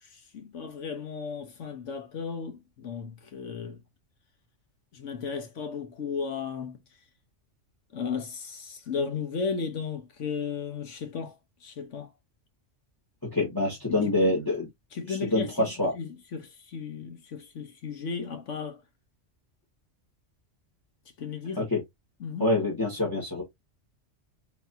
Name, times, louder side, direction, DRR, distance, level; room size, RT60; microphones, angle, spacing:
voice 1, 0.0-3.8 4.9-6.8 7.9-11.4 11.6-12.1 13.9-14.3 14.9-15.7 15.9-18.8 21.2-21.7 22.2-22.6, left 5 dB, 80° left, 1.3 m, -35 dB
voice 2, 13.3-14.7 15.1-15.9 21.6-21.8 22.4-23.4, left 2 dB, 15° left, 1.8 m, -26 dB
4.7 x 4.0 x 2.7 m
omnidirectional pair, 1.3 m